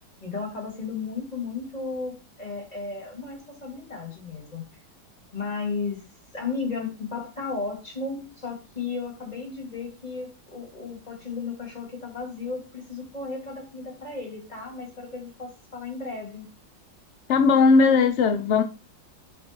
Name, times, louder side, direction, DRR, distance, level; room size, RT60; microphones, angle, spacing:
voice 1, 0.2-4.7 5.3-6.0 6.3-16.5, left 4 dB, 20° left, 2.5 m, -34 dB
voice 2, 17.3-18.6, left 4 dB, 75° left, 0.6 m, -18 dB
7.5 x 4.2 x 4.4 m
omnidirectional pair, 2.0 m